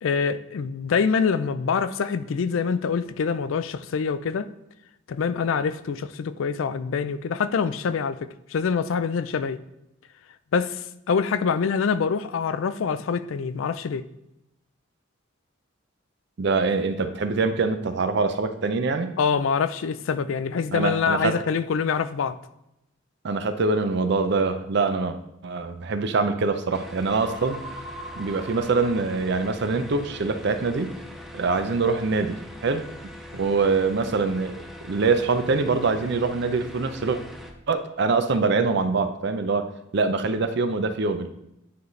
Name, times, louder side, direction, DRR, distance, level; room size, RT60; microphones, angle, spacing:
voice 1, 0.0-4.5 5.1-9.6 10.5-14.0 19.2-22.4, left 6 dB, 80° left, 0.4 m, -25 dB
voice 2, 16.4-19.1 20.7-21.4 23.2-25.2 25.4-27.6 28.2-30.9 31.3-32.8 33.3-37.2 37.7-39.7 39.9-41.3, right 4 dB, 60° right, 0.5 m, -24 dB
sound 1, 26.7-37.5, left 1 dB, ahead, 0.5 m, -42 dB
sound 2, 27.2-29.8, right 2 dB, 30° right, 0.8 m, -41 dB
9.4 x 3.9 x 3.2 m
head